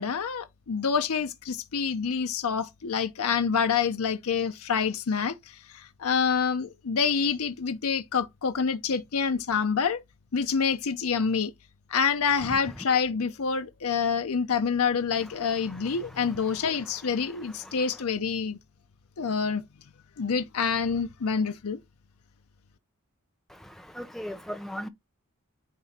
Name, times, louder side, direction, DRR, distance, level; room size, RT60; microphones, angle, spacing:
voice 1, 0.0-10.0 10.3-11.5 11.9-18.6 19.2-19.6 20.2-21.8, left 6 dB, 80° left, 0.6 m, -27 dB
voice 2, 17.2-17.8 23.5-24.9, equal, ahead, 0.7 m, -39 dB
9.5 x 3.4 x 4.1 m
head